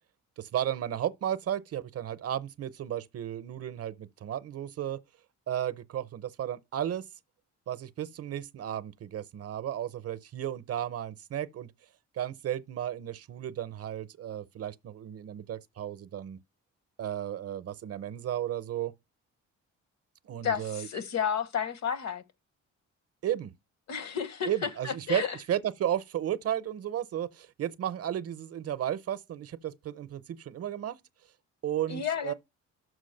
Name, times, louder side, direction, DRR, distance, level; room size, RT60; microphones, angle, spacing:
voice 1, 0.4-5.0 5.5-7.0 7.7-11.7 12.1-16.4 17.0-18.9 20.2-20.9 23.2-23.5 24.4-31.0 31.6-32.3, right 11 dB, 55° right, 0.6 m, -34 dB
voice 2, 20.4-22.2 23.9-25.4 31.9-32.3, left 7 dB, 60° left, 1.1 m, -32 dB
6.3 x 4.8 x 6.5 m
cardioid pair, 90°, 30 cm